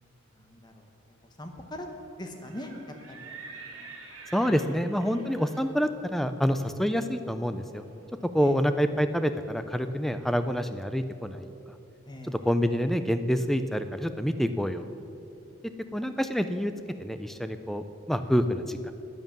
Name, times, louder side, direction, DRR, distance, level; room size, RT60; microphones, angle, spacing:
voice 1, 0.3-0.9 1.2-1.9 2.2-3.3 4.4-4.7 8.3-8.6 12.1-12.5 15.9-16.0, left 1 dB, 20° left, 4 dB, 1.1 m, -42 dB
Livestock farm animals working animals, 2.3-8.1, right 4 dB, 75° right, 2.3 m, -48 dB
voice 2, 4.3-7.8 8.3-11.5 12.2-14.9 15.9-16.7 17.0-18.9, equal, ahead, 10 dB, 0.4 m, -27 dB
10.5 x 9.6 x 7.4 m, 2.8 s
head